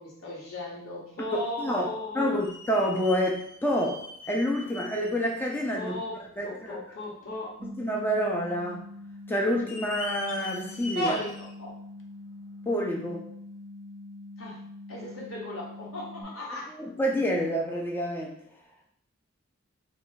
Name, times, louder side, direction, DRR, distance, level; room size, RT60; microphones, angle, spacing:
voice 1, 0.0-2.4 5.7-6.2 6.4-7.5 10.9-11.3 11.6-11.8 14.4-14.6 14.9-16.7, left 1 dB, 90° left, -5 dB, 1.0 m, -36 dB
sound 1, 1.6-1.7 2.4-5.8 6.3-6.4 7.0-7.1 8.0-8.4 8.7-8.8 9.5-11.5 12.0-12.1 13.0-13.1, left 2 dB, 60° left, 0.5 m, -42 dB
voice 2, 1.6-1.9 2.1-6.5 7.6-8.8 9.3-11.1 12.7-13.2 16.7-18.4, equal, 10° left, -1 dB, 0.5 m, -28 dB
sound 2, 7.6-16.2, left 2 dB, 40° right, 0.6 m, -44 dB
3.1 x 2.3 x 3.9 m, 0.66 s
head